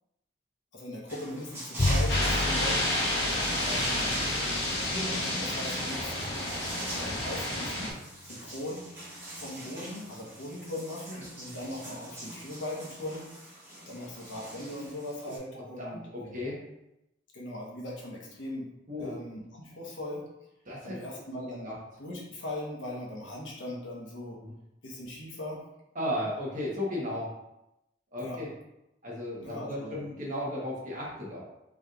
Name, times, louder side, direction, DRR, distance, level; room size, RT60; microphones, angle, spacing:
voice 1, 0.7-3.0 3.6-4.2 4.6-6.3 6.9-8.9 9.4-13.6 13.9-16.5 17.3-18.7 19.0-20.2 20.8-21.7 22.0-24.4 24.8-25.6 28.2-28.4 29.4-30.0, left 1 dB, 90° left, -2 dB, 1.1 m, -39 dB
sound 1, 1.1-15.4, right 1 dB, 15° right, 1.5 m, -43 dB
Bowed string instrument, 1.8-8.2, left 1 dB, 30° left, 0.5 m, -34 dB
sound 2, 2.1-7.9, left 1 dB, 60° left, 1.1 m, -30 dB
voice 2, 15.2-16.6 18.9-19.2 20.6-21.0 21.6-21.8 24.4-24.6 25.9-27.3 28.1-28.5 29.0-31.4, left 1 dB, 45° right, -5 dB, 1.2 m, -35 dB
5.0 x 3.2 x 2.4 m, 0.89 s
head